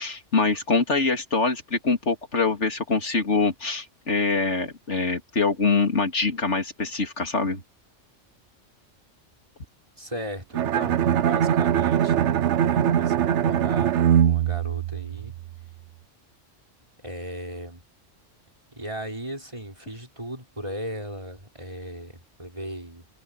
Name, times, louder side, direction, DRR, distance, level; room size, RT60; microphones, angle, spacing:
voice 1, 0.0-7.6, left 4 dB, 70° left, 3.2 m, -24 dB
voice 2, 10.0-14.0 14.2-15.3 17.0-17.8 18.7-23.0, right 1 dB, 25° right, 6.1 m, -37 dB
Bowed string instrument, 10.5-15.6, right 9 dB, 75° right, 1.0 m, -22 dB
omnidirectional pair, 1.3 m